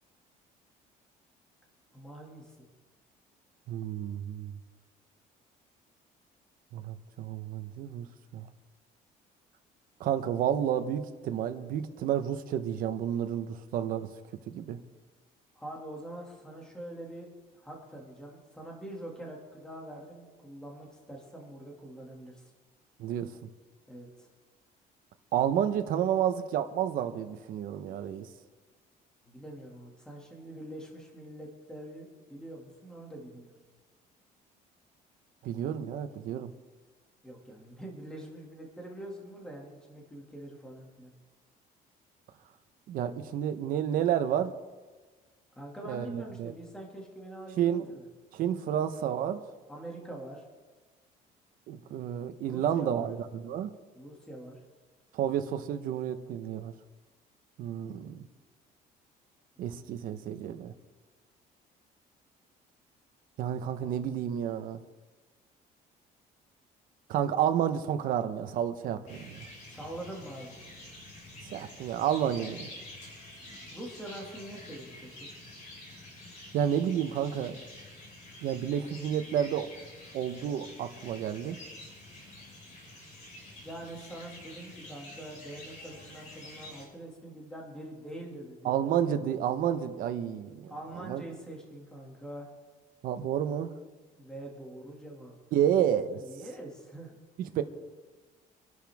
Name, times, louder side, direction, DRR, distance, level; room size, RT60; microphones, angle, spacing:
voice 1, 1.9-2.7 15.6-17.3 17.5-22.4 23.9-24.3 29.2-33.6 37.2-41.1 45.6-48.1 49.7-50.4 52.5-53.1 53.9-54.6 69.7-70.7 73.7-75.3 83.6-88.8 90.7-92.5 94.2-95.4 96.1-97.2, right 1 dB, 5° left, -1 dB, 2.3 m, -44 dB
voice 2, 3.7-4.5 6.7-8.1 8.3-8.5 10.0-14.1 14.5-14.8 23.0-23.3 25.3-28.3 35.4-36.5 42.9-44.6 45.8-46.5 47.6-47.9 48.3-49.4 51.7-53.7 55.1-56.7 57.6-58.2 59.6-60.7 63.4-64.8 67.1-69.5 71.5-72.7 76.5-77.6 78.4-79.7 80.1-81.6 88.6-90.7 91.0-91.2 93.0-93.7 95.5-96.2 97.4-97.6, right 9 dB, 65° right, 8 dB, 1.1 m, -30 dB
sound 1, 69.1-86.9, left 1 dB, 50° left, 5.6 m, -48 dB
26.0 x 11.0 x 3.6 m, 1.3 s
cardioid pair, 165°, 16 cm